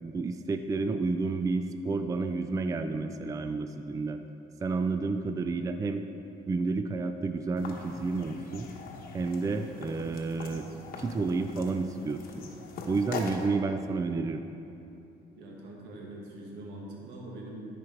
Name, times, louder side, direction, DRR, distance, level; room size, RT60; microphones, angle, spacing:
voice 1, 0.0-4.2 4.6-6.0 6.5-8.7 9.1-10.6 11.0-12.5 12.9-14.4, right 3 dB, 20° right, 8 dB, 0.4 m, -30 dB
sound 1, 7.6-13.5, left 3 dB, 60° left, 1.1 m, -42 dB
voice 2, 15.4-17.7, right 1 dB, 85° right, -2 dB, 1.9 m, -43 dB
13.5 x 5.1 x 4.5 m, 2.8 s
cardioid pair, 110°, 17 cm